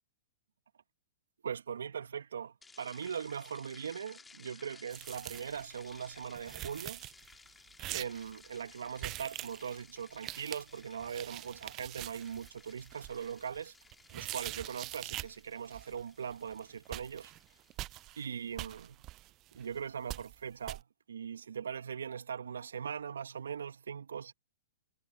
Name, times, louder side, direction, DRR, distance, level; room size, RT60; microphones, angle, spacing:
voice 1, 1.4-7.0 7.9-13.7 14.1-17.3 18.2-19.0 19.6-24.3, right 7 dB, 70° right, 1.7 m, -40 dB
sound 1, 2.6-18.9, left 4 dB, 10° left, 2.7 m, -58 dB
sound 2, 4.9-5.6 6.0-6.1 6.2-7.3 7.8-8.3 9.0-9.8 10.1-15.4 15.7-16.0 16.3-16.6 16.8-18.2 18.6-19.8 20.1-20.4 20.6-20.8, right 17 dB, 35° right, 0.5 m, -44 dB
figure-of-eight pair, 115°, 0 cm